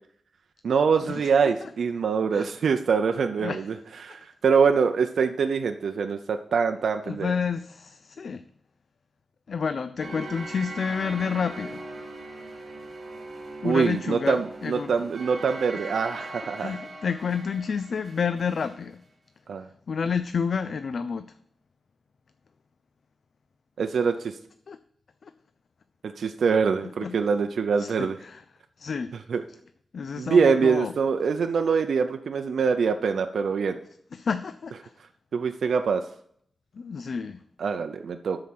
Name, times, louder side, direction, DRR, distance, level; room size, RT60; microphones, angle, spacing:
voice 1, 0.6-3.8 4.0-7.3 13.6-16.8 19.5-19.7 23.8-24.4 26.0-28.2 29.3-29.4 30.2-33.8 35.3-36.0 37.6-38.4, right 5 dB, 80° right, 6 dB, 0.6 m, -24 dB
voice 2, 3.4-3.7 7.1-8.4 9.5-11.8 13.6-15.0 16.6-19.0 19.9-21.3 24.7-24.8 25.2-25.3 26.8-27.2 27.8-28.4 28.8-29.1 29.9-30.9 34.1-34.9 36.7-37.4, left 6 dB, 60° left, 11 dB, 0.4 m, -30 dB
sound 1, 10.0-18.8, right 2 dB, 50° right, 3.7 m, -40 dB
12.5 x 4.9 x 6.0 m, 0.67 s
wide cardioid pair, 140°, 0 cm